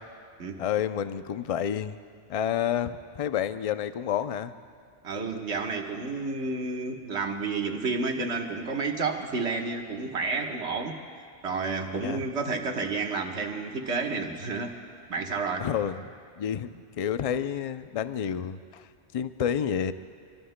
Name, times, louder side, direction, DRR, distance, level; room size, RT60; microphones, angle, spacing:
voice 1, 0.6-2.0 2.3-4.5 11.9-12.2 15.6-19.9, left 9 dB, 60° left, 11 dB, 0.3 m, -30 dB
voice 2, 5.0-11.0 11.4-14.8 15.1-15.7, right 4 dB, 70° right, 2 dB, 1.5 m, -30 dB
25.0 x 24.0 x 2.2 m, 2.2 s
omnidirectional pair, 1.2 m